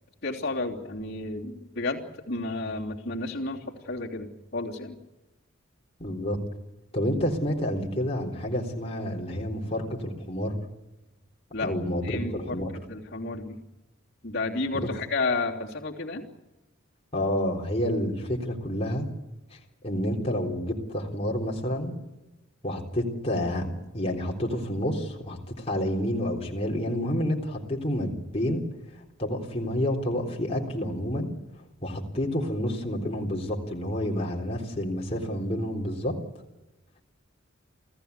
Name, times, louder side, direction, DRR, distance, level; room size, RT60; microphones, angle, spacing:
voice 1, 0.2-5.0 11.5-11.7 12.0-12.6 12.9-13.6 14.2-16.2, left 3 dB, 50° left, -5 dB, 3.2 m, -31 dB
voice 2, 6.0-6.4 6.9-10.5 11.6-12.0 12.3-12.7 17.1-19.1 19.5-19.6 19.8-22.0 22.6-23.7 23.9-28.6 28.9-31.3 31.8-36.1, equal, 30° left, 0 dB, 3.6 m, -29 dB
28.5 x 16.5 x 8.2 m, 1.0 s
head